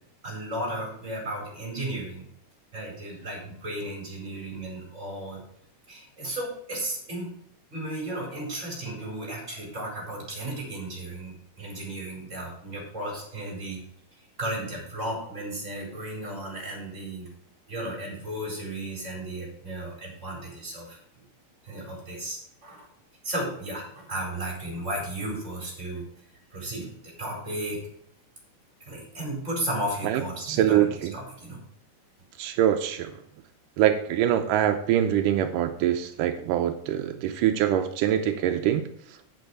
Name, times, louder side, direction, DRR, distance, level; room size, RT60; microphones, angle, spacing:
voice 1, 0.2-2.2 2.7-5.4 5.9-7.3 7.7-13.8 14.4-17.3 17.7-21.0 21.6-22.9 23.2-26.1 26.5-26.9 27.2-27.8 28.9-31.6, right 1 dB, 20° right, -2 dB, 4.5 m, -34 dB
voice 2, 30.5-31.1 32.4-33.1 33.8-38.8, right 11 dB, 85° right, 6 dB, 2.3 m, -24 dB
9.3 x 8.0 x 4.7 m, 0.70 s
omnidirectional pair, 3.6 m